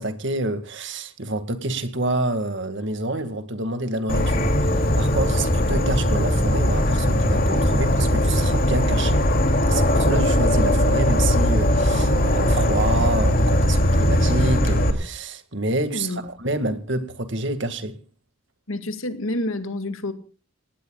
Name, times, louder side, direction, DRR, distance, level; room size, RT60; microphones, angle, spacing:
voice 1, 0.0-9.3 9.7-18.0, right 2 dB, 55° right, 2.0 m, -28 dB
Insect / Frog, 4.1-14.9, left 1 dB, 40° left, 2.7 m, -19 dB
voice 2, 15.9-16.2 16.6-16.7 18.7-20.1, left 1 dB, 75° left, 2.1 m, -28 dB
27.5 x 18.5 x 2.4 m
head